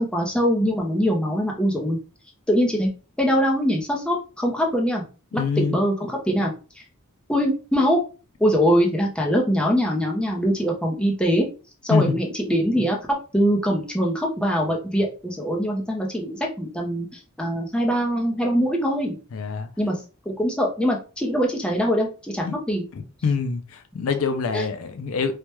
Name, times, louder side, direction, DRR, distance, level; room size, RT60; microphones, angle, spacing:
voice 1, 0.0-2.0 2.5-2.9 3.2-5.0 5.6-6.5 7.3-8.0 8.4-11.5 11.8-13.0 13.3-19.2 19.8-20.0 20.3-22.8 24.5-24.6, equal, 5° left, 0.5 m, -22 dB
voice 2, 5.3-5.8 11.9-12.2 19.3-19.7 22.4-22.6 23.0-25.4, left 5 dB, 65° left, 0.4 m, -25 dB
3.2 x 2.2 x 2.9 m
head